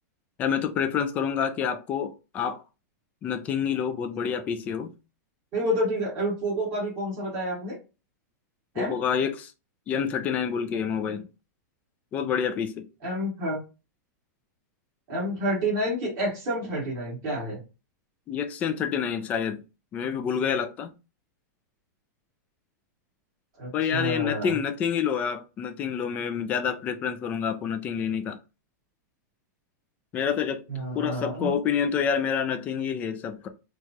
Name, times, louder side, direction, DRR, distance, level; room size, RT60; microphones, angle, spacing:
voice 1, 0.4-2.6 3.2-4.9 8.8-9.5 9.9-11.3 12.1-12.9 18.3-19.6 19.9-20.9 23.7-28.4 30.1-30.6 30.9-33.5, left 7 dB, 15° left, 0.3 m, -28 dB
voice 2, 5.5-7.8 8.7-9.0 13.0-13.6 15.1-17.6 23.6-24.6 30.7-31.5, equal, 30° right, 2.0 m, -29 dB
4.6 x 2.3 x 2.9 m
supercardioid pair, 175°, 10 cm